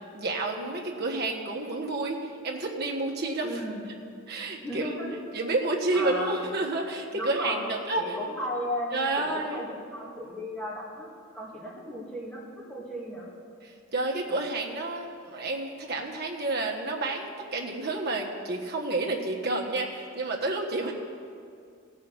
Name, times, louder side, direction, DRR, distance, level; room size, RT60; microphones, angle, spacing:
voice 1, 0.1-3.6 4.3-4.9 5.3-8.1 8.9-9.6 13.6-20.9, right 2 dB, 50° right, 0 dB, 1.3 m, -30 dB
voice 2, 3.4-3.9 4.6-5.2 5.9-6.5 7.1-7.7 8.0-8.9 9.2-13.3, left 1 dB, 5° left, -5 dB, 2.1 m, -35 dB
16.5 x 5.6 x 7.2 m, 2.3 s
head